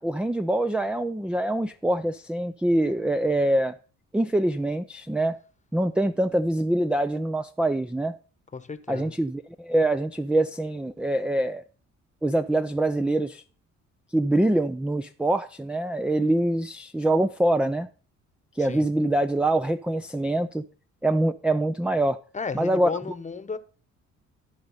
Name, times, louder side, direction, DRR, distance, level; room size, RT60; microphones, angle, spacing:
voice 1, 0.0-3.7 4.1-5.4 5.7-8.1 8.9-11.6 12.2-13.4 14.1-17.9 18.6-20.6 21.0-22.2 22.5-22.9, right 1 dB, 5° right, 0.4 m, -24 dB
voice 2, 8.5-9.1 18.6-18.9 22.3-23.6, left 4 dB, 25° left, 1.1 m, -34 dB
13.5 x 5.2 x 5.6 m
cardioid pair, 90°, 30 cm